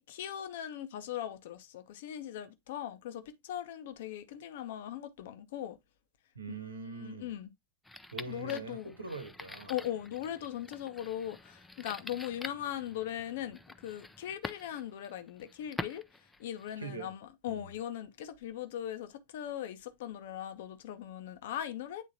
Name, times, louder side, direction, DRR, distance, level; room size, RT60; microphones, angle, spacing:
voice 1, 0.0-5.8 6.5-6.6 7.0-7.5 8.3-8.9 9.7-16.0 16.4-22.0, left 11 dB, 55° left, 0.8 m, -39 dB
voice 2, 6.3-7.3 8.1-9.7 16.8-17.1 17.5-17.7, right 3 dB, 80° right, 1.1 m, -43 dB
sound 1, 7.8-16.9, left 2 dB, 5° left, 0.5 m, -47 dB
9.1 x 3.7 x 2.8 m
figure-of-eight pair, 90°, 0 cm